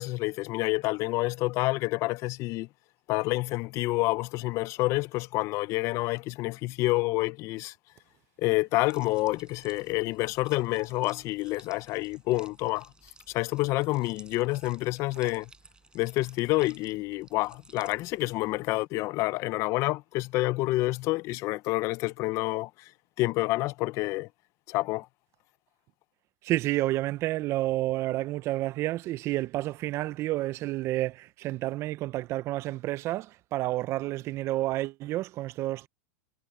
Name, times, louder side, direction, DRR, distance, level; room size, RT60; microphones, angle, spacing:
voice 1, 0.0-2.7 3.1-7.7 8.4-12.9 13.3-15.5 15.9-22.7 23.2-24.3 24.7-25.1, left 20 dB, 40° left, 0.7 m, -28 dB
sound 1, 8.8-18.7, right 4 dB, 10° right, 6.0 m, -56 dB
voice 2, 26.4-35.9, right 16 dB, 40° right, 0.6 m, -30 dB
supercardioid pair, 130°, 7 cm